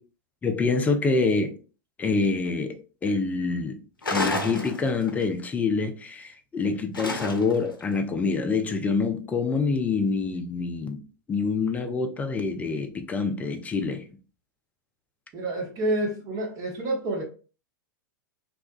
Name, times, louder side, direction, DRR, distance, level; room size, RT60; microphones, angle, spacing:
voice 1, 0.4-1.6 2.0-3.8 4.1-11.0 11.3-14.0, left 4 dB, 15° left, 0.3 m, -26 dB
sound 1, 4.0-5.2 6.9-7.7, left 2 dB, 85° left, 0.5 m, -30 dB
voice 2, 15.3-17.2, right 1 dB, 30° right, 0.8 m, -28 dB
2.7 x 2.2 x 2.2 m
figure-of-eight pair, 95°, 11 cm